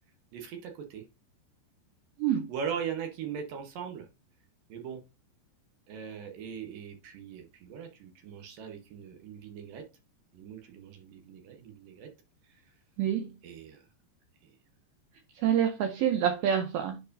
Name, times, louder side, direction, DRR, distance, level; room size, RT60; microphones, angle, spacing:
voice 1, 0.3-1.0 2.3-4.1 4.7-5.0 5.9-9.9 10.3-12.1 12.5-12.6 13.4-13.9 14.4-14.5, right 7 dB, 70° right, 2.2 m, -40 dB
voice 2, 2.2-2.5 13.0-13.3 15.4-17.0, right 9 dB, 90° right, 2.1 m, -27 dB
10.5 x 4.7 x 2.6 m
omnidirectional pair, 5.2 m